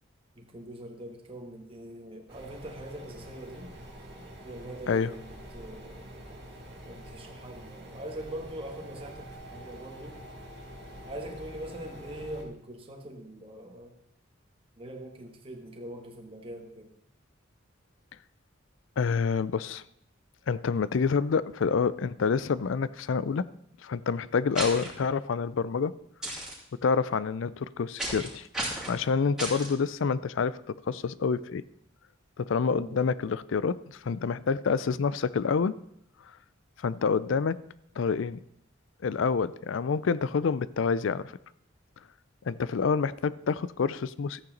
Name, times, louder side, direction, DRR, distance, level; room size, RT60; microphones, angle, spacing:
voice 1, 0.3-3.7 4.4-6.2 6.8-10.2 11.1-14.0 14.8-16.9 32.7-33.1, right 1 dB, 30° right, 2 dB, 1.5 m, -42 dB
sound 1, 2.3-12.4, equal, 55° right, 2.3 m, -46 dB
voice 2, 19.0-19.8 20.5-23.5 23.8-25.9 26.8-28.5 28.9-30.6 30.9-31.6 32.4-35.8 36.8-37.6 38.0-38.4 39.0-41.2 42.5-44.4, left 5 dB, 65° left, 18 dB, 0.4 m, -27 dB
sound 2, 24.5-24.9 26.2-26.5 28.0-28.3 28.5-28.9 29.4-29.7, right 1 dB, 5° right, 2.6 m, -33 dB
13.5 x 8.7 x 3.9 m, 0.76 s
head